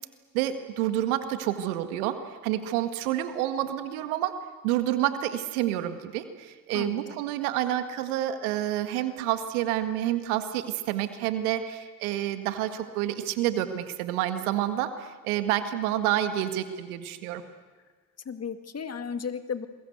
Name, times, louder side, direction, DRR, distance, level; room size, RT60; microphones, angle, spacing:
voice 1, 0.3-2.2 2.4-4.3 4.6-17.4, right 12 dB, 80° right, 9 dB, 1.9 m, -28 dB
voice 2, 6.7-7.2 18.3-19.7, left 6 dB, 35° left, 9 dB, 2.1 m, -34 dB
28.5 x 22.5 x 8.1 m, 1.4 s
hypercardioid pair, 60°, 43 cm